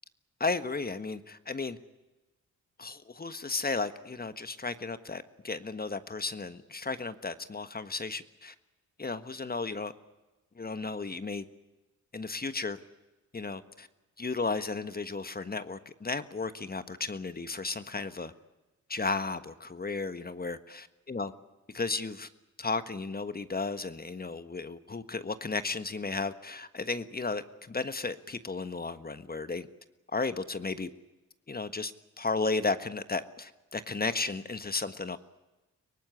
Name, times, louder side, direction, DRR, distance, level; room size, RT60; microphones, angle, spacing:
voice 1, 0.4-1.8 2.8-8.5 9.0-9.9 10.6-11.4 12.1-12.8 13.3-13.9 14.2-18.3 18.9-21.3 21.7-22.3 22.6-29.7 30.1-30.9 31.5-31.9 32.2-35.2, left 3 dB, 30° left, 11 dB, 1.4 m, -34 dB
23.5 x 19.0 x 9.7 m, 1.1 s
supercardioid pair, 60°, 31 cm